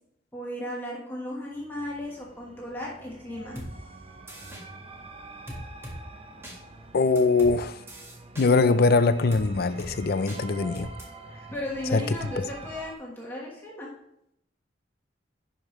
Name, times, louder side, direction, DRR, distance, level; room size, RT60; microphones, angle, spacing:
voice 1, 0.3-3.6 11.5-13.9, left 1 dB, 10° left, 1.4 m, -35 dB
sound 1, 1.5-12.9, right 2 dB, 30° right, 0.6 m, -46 dB
sound 2, 3.6-3.7 4.3-4.6 5.5-6.0 6.4-6.6 7.2-7.5 7.9-8.5 9.3-9.5 9.8-9.9 10.3-10.4 10.8-11.0, equal, 15° right, 1.7 m, -39 dB
voice 2, 6.9-7.8 8.4-10.9 11.9-12.0 12.4-12.5, left 3 dB, 55° left, 0.5 m, -22 dB
11.0 x 5.1 x 3.2 m
head